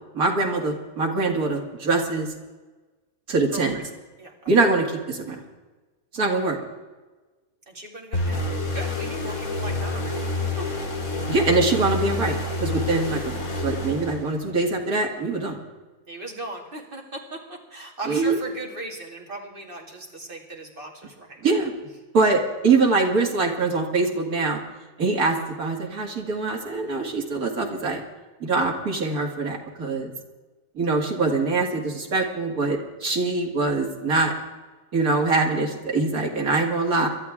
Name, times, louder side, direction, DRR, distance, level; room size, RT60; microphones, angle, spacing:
voice 1, 0.1-2.3 3.3-3.8 4.5-5.4 6.1-6.6 11.3-13.2 13.6-15.6 18.1-18.4 21.4-21.7 22.1-24.6 25.0-28.0 28.4-30.1 30.8-34.3 34.9-37.1, right 3 dB, 85° right, 1 dB, 2.7 m, -23 dB
voice 2, 3.5-3.8 4.2-4.7 5.3-5.4 7.7-10.6 15.3-15.5 16.1-21.5, right 2 dB, 35° right, -1 dB, 2.7 m, -38 dB
sound 1, 8.1-14.6, left 2 dB, 70° left, 3.0 m, -28 dB
22.5 x 13.0 x 3.7 m, 1.2 s
omnidirectional pair, 1.5 m